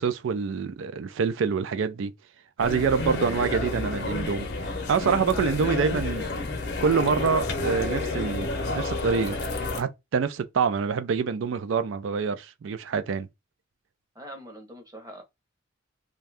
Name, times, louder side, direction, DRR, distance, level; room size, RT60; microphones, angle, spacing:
voice 1, 0.0-2.1 2.6-4.5 4.9-6.3 6.8-9.4 9.8-13.3, right 5 dB, 70° right, 0.4 m, -26 dB
sound 1, 2.6-9.8, left 2 dB, 55° left, 0.6 m, -30 dB
voice 2, 14.1-15.2, right 1 dB, 20° right, 0.8 m, -43 dB
2.6 x 2.3 x 3.3 m
head